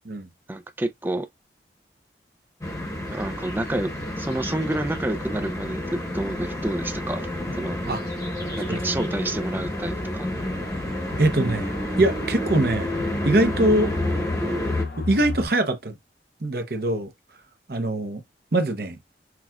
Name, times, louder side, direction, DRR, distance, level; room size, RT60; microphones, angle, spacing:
voice 1, 0.5-1.3 3.1-7.3 7.6-7.8 8.6-10.3, right 1 dB, 10° right, 0.4 m, -29 dB
sound 1, 2.6-14.8, left 1 dB, 20° left, 1.0 m, -29 dB
sound 2, 7.7-7.8 8.3-8.4 9.3-15.5, left 2 dB, 60° left, 0.6 m, -34 dB
voice 2, 11.2-12.9 13.2-13.9 15.0-15.9 16.4-17.1 17.7-18.2 18.5-19.0, right 1 dB, 60° right, 0.8 m, -23 dB
5.9 x 2.4 x 2.3 m
head